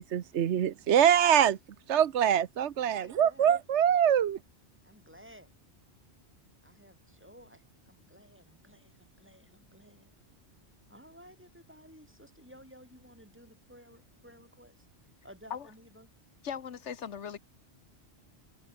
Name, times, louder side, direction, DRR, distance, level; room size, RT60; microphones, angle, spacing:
voice 1, 0.0-1.6 1.9-4.4, right 9 dB, 80° right, 1.1 m, -24 dB
voice 2, 2.8-3.5 4.8-5.5 6.6-10.1 10.9-14.9 15.2-16.1, equal, 10° right, 7.0 m, -55 dB
voice 3, 16.4-17.4, left 7 dB, 85° left, 1.4 m, -38 dB
omnidirectional pair, 1.2 m